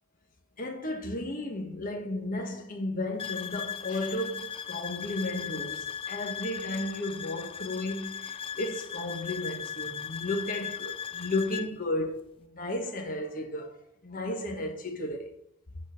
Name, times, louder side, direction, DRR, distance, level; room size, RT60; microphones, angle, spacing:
voice 1, 0.6-15.3, left 1 dB, 40° left, 1.5 m, -34 dB
sound 1, 3.2-11.7, left 7 dB, 25° left, 0.3 m, -38 dB
8.2 x 4.4 x 6.6 m
head